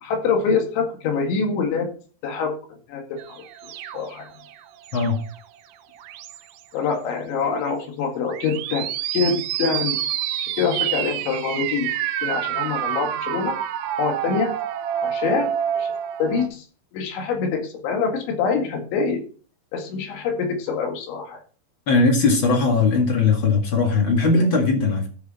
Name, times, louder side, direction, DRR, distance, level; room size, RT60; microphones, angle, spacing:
voice 1, 0.0-1.9 2.2-2.5 2.9-4.3 6.7-10.0 10.4-11.9 12.2-13.5 14.0-14.5 15.0-15.9 16.2-16.7 16.9-19.2 19.7-21.4, left 5 dB, 85° left, 3 dB, 4.4 m, -25 dB
sound 1, 3.2-5.4 6.0-6.6 8.2-16.5, right 10 dB, 75° right, 2.7 m, -28 dB
voice 2, 21.9-25.1, left 3 dB, 45° left, 2 dB, 1.7 m, -19 dB
14.0 x 6.4 x 4.2 m, 0.41 s
omnidirectional pair, 5.1 m